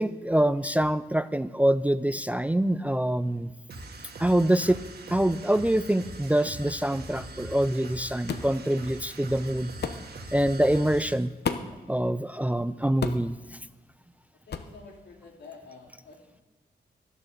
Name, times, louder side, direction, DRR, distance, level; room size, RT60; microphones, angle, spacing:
voice 1, 0.0-3.5 4.2-4.8 5.1-9.7 10.3-11.3 11.9-13.4, right 1 dB, 10° right, 14 dB, 0.4 m, -25 dB
sound 1, 3.7-11.3, right 2 dB, 65° right, 1.7 m, -42 dB
sound 2, 8.3-8.5 9.8-10.0 11.4-11.8 13.0-13.3 14.5-14.7, left 6 dB, 70° left, 0.9 m, -31 dB
voice 2, 14.5-16.4, left 4 dB, 85° left, 0 dB, 3.1 m, -49 dB
12.0 x 11.5 x 6.8 m, 1.2 s
wide cardioid pair, 120°, 18 cm